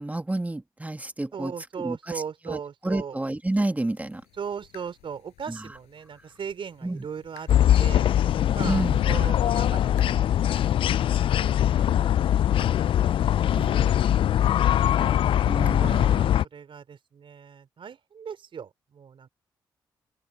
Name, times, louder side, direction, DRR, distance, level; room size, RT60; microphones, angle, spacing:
voice 1, 0.0-1.5 1.8-2.0 2.5-2.6 2.8-4.2 5.5-5.6 6.8-7.0 8.6-9.0 13.5-13.7 15.4-16.2, right 2 dB, 15° right, 1.6 m, -29 dB
voice 2, 1.3-3.2 4.3-8.1 8.5-12.2 12.7-14.2 14.4-15.2 15.8-19.3, right 7 dB, 60° right, 4.8 m, -39 dB
sound 1, 3.9-14.2, left 18 dB, 85° left, 6.8 m, -57 dB
sound 2, 7.5-16.4, left 11 dB, 60° left, 0.4 m, -22 dB
hypercardioid pair, 45°, 10 cm